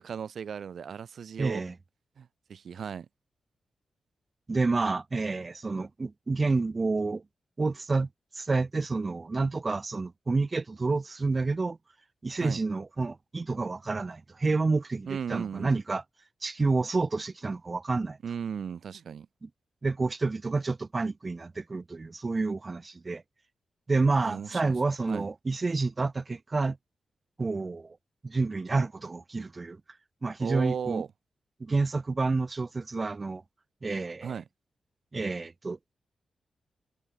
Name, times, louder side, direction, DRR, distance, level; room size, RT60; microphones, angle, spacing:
voice 1, 0.0-1.6 2.2-3.1 12.4-12.6 15.1-15.8 18.2-19.3 24.2-24.7 25.1-25.3 30.4-31.1 34.2-34.4, right 7 dB, 60° right, 2.8 m, -36 dB
voice 2, 1.4-1.7 4.5-7.2 7.6-8.1 8.3-11.8 12.2-16.0 16.4-18.2 19.4-19.5 19.8-23.2 23.9-26.8 27.4-28.0 28.2-29.8 30.2-31.0 31.6-33.4 33.8-34.3 35.1-35.8, right 3 dB, 25° right, 2.1 m, -29 dB
wide cardioid pair, 160°, 0 cm